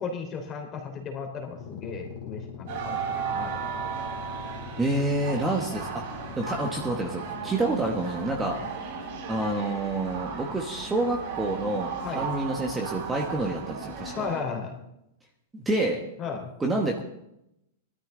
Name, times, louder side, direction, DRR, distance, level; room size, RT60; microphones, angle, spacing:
voice 1, 0.0-3.8 8.6-8.7 12.0-12.3 14.1-14.8 16.2-16.5, left 5 dB, 25° left, 3 dB, 3.3 m, -35 dB
sound 1, 1.4-8.8, left 7 dB, 40° left, 2.7 m, -43 dB
sound 2, 2.7-14.4, right 6 dB, 50° right, 4.1 m, -35 dB
voice 2, 4.8-6.0 6.4-8.6 9.3-14.3 15.5-16.0 16.6-17.0, right 2 dB, 10° right, 1 dB, 1.3 m, -28 dB
20.0 x 13.0 x 3.9 m, 0.81 s
supercardioid pair, 165°, 0 cm